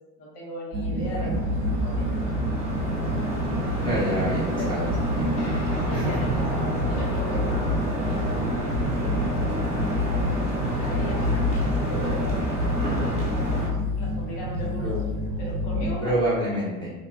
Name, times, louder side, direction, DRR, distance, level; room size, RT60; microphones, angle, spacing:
voice 1, 0.2-2.2 3.9-4.8 5.8-15.0 15.4-16.1, equal, 55° left, -4 dB, 1.0 m, -38 dB
sound 1, 0.7-15.9, equal, 45° right, 0.5 m, -28 dB
sound 2, 1.0-13.7, equal, 15° right, 1.0 m, -30 dB
voice 2, 3.8-4.9 5.2-5.5 5.9-6.1 14.8-15.0 16.0-16.9, right 1 dB, 10° left, -8 dB, 0.5 m, -27 dB
Guitar, 5.4-14.7, left 1 dB, 85° left, 1.3 m, -40 dB
2.8 x 2.2 x 2.5 m, 1.2 s
hypercardioid pair, 100°, 45 cm